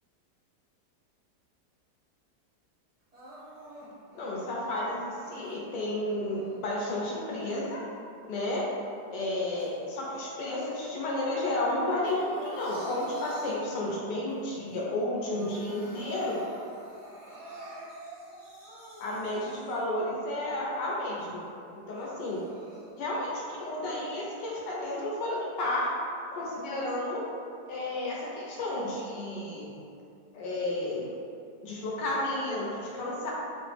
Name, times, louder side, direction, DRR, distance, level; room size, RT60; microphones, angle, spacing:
Crying sobbing, 3.1-5.5 6.2-8.0 8.4-11.3 11.6-14.3 14.7-14.8 15.1-20.0 20.5-20.6 21.1-21.2 22.0-22.9, equal, 45° right, 0.4 m, -48 dB
voice 1, 4.1-7.8 8.3-8.7 9.1-16.4 19.0-21.5 21.9-22.4 23.0-25.9 26.3-27.2 27.7-29.7 30.3-31.0 31.6-33.3, left 1 dB, 90° left, -4 dB, 1.3 m, -32 dB
3.6 x 2.0 x 3.2 m, 2.5 s
omnidirectional pair, 1.8 m